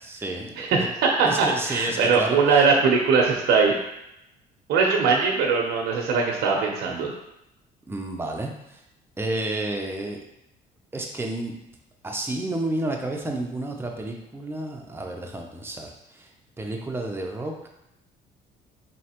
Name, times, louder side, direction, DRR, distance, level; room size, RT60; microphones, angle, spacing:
voice 1, 0.0-0.9 1.2-2.4 7.9-8.8 9.2-10.2 10.9-11.5 12.0-16.3 16.6-17.7, right 2 dB, 15° right, 2 dB, 0.6 m, -31 dB
voice 2, 0.6-3.8 4.7-7.1, right 5 dB, 75° right, 0 dB, 0.7 m, -21 dB
4.5 x 3.1 x 2.9 m, 0.84 s
cardioid pair, 110°, 17 cm